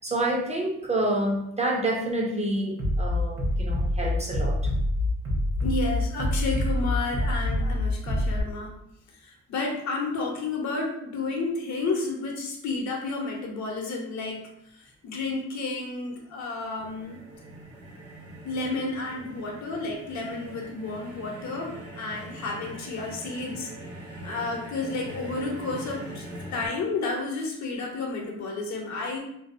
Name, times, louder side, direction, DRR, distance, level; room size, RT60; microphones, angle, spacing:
voice 1, 0.0-4.7, right 1 dB, 20° right, 1 dB, 0.4 m, -28 dB
Bass drum, 2.8-8.4, left 1 dB, 50° right, 0.8 m, -26 dB
voice 2, 5.6-8.8 9.2-17.2 18.4-23.7 24.2-26.3 26.5-29.2, left 3 dB, 65° left, 1 dB, 0.7 m, -31 dB
sound 1, 16.8-26.7, right 1 dB, 80° right, 1.1 m, -42 dB
2.6 x 2.0 x 2.4 m, 0.75 s
cardioid pair, 90°, 30 cm